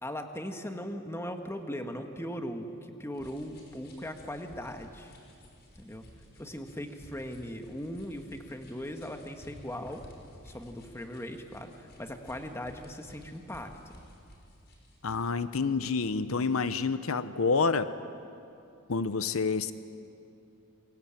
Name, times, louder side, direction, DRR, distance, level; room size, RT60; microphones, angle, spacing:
voice 1, 0.0-5.1 5.8-6.1 6.4-10.0 10.4-14.0, equal, 10° left, 5 dB, 1.7 m, -39 dB
sound 1, 3.1-15.3, equal, 50° left, 6.1 m, -54 dB
voice 2, 15.0-17.9 18.9-19.7, left 4 dB, 80° left, 13 dB, 0.8 m, -28 dB
27.5 x 23.5 x 9.0 m, 2.6 s
head